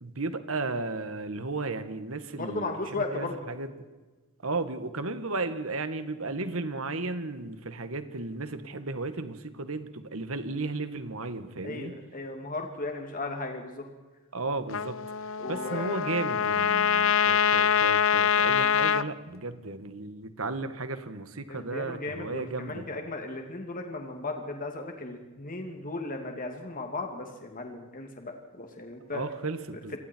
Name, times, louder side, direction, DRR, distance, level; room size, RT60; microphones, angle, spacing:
voice 1, 0.0-3.7 4.4-11.9 14.3-15.0 15.5-22.9 29.1-30.0, right 3 dB, 70° right, 10 dB, 1.8 m, -34 dB
voice 2, 2.4-3.4 11.6-13.9 15.4-16.0 21.5-29.2 29.9-30.0, left 2 dB, 40° left, 3 dB, 2.5 m, -36 dB
Trumpet, 14.7-19.0, left 7 dB, 65° left, 0.8 m, -24 dB
29.5 x 23.0 x 4.6 m, 1.3 s
head